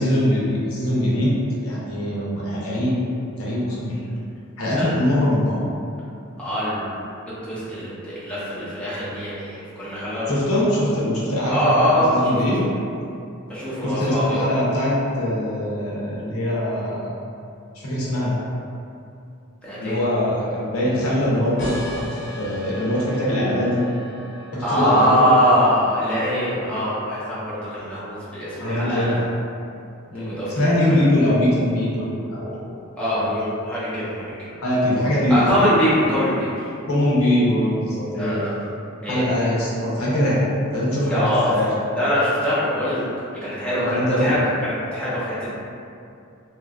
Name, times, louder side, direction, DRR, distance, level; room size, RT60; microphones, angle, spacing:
voice 1, 0.0-1.4 1.6-3.0 3.4-4.1 4.6-5.6 10.3-12.6 13.8-17.2 17.7-18.4 19.8-22.0 22.4-23.8 24.5-25.3 28.6-29.2 30.1-32.7 33.2-33.3 34.6-35.5 36.9-38.4 39.1-40.4 40.7-41.8 43.8-44.3, left 1 dB, 85° left, -7 dB, 0.7 m, -22 dB
voice 2, 6.4-7.0 7.4-10.3 11.5-12.7 13.5-14.4 19.6-20.0 24.6-29.2 30.1-31.0 33.0-34.5 35.3-36.7 38.2-38.6 39.0-39.6 41.0-41.5 42.0-43.0 43.4-45.5, equal, 5° left, -11 dB, 0.6 m, -23 dB
sound 1, 21.6-26.8, left 1 dB, 55° left, 0.9 m, -36 dB
2.9 x 2.4 x 2.2 m, 2.6 s
head